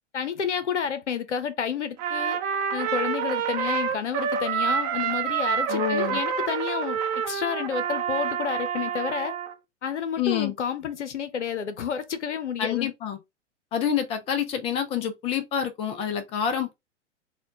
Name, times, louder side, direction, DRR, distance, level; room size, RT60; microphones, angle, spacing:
voice 1, 0.1-2.4 2.7-9.3 9.8-12.9, left 7 dB, 70° left, 0.8 m, -30 dB
Trumpet, 2.0-9.5, right 7 dB, 35° right, 0.7 m, -28 dB
voice 2, 5.7-6.2 10.2-10.5 12.6-13.2 13.7-16.7, left 8 dB, 15° left, 0.5 m, -27 dB
4.3 x 2.3 x 3.4 m
figure-of-eight pair, 105°, 36 cm